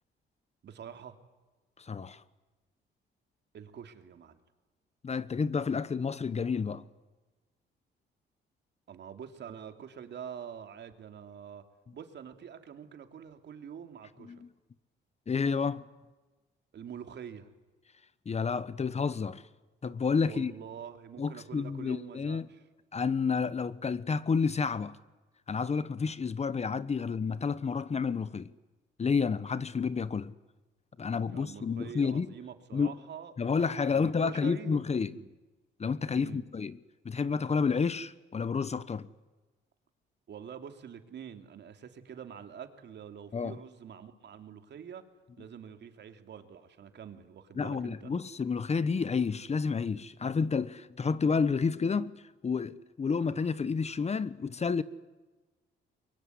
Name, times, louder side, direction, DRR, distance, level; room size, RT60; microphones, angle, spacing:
voice 1, 0.6-1.2 3.5-4.4 8.9-11.6 11.9-14.4 16.7-17.5 20.2-22.6 31.3-34.8 35.1-35.3 36.1-36.4 40.3-45.1 45.4-48.1, right 8 dB, 60° right, 2.9 m, -46 dB
voice 2, 1.8-2.2 5.0-6.8 14.2-14.5 15.3-15.9 18.2-19.4 19.8-20.5 21.2-22.5 22.9-25.0 25.5-28.5 29.0-30.3 31.0-32.3 32.7-33.0 33.4-35.2 35.8-36.8 37.0-39.1 43.3-43.5 47.5-52.1 52.4-54.8, left 5 dB, 35° left, 1.1 m, -30 dB
23.5 x 23.0 x 9.7 m
cardioid pair, 90°, 20 cm